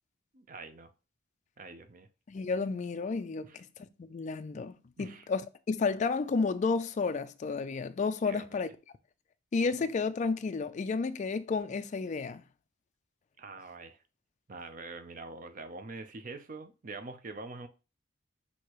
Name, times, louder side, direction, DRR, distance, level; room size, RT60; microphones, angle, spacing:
voice 1, 0.3-0.9 1.6-2.1 3.4-3.6 5.0-5.3 8.2-8.6 13.4-14.0 14.5-17.7, right 3 dB, 45° right, 0.5 m, -44 dB
voice 2, 2.3-3.7 4.0-5.4 5.7-8.7 9.5-12.4, left 4 dB, 35° left, 0.3 m, -31 dB
6.2 x 2.8 x 2.9 m
head